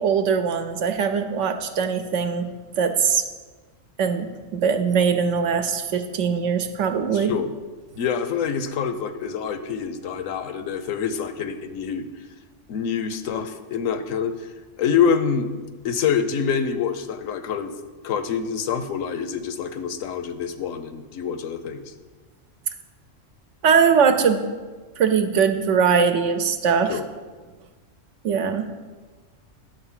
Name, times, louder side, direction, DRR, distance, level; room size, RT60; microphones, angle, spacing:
voice 1, 0.0-2.5 2.8-3.3 4.0-7.3 23.6-24.4 25.0-27.0 28.2-28.7, right 6 dB, 70° right, 7 dB, 1.0 m, -21 dB
voice 2, 7.1-7.5 7.9-12.1 12.7-14.5 14.8-15.5 15.8-17.7 18.0-21.9 26.9-27.0, left 7 dB, 80° left, 10 dB, 1.0 m, -26 dB
10.5 x 3.9 x 7.3 m, 1.3 s
omnidirectional pair, 1.3 m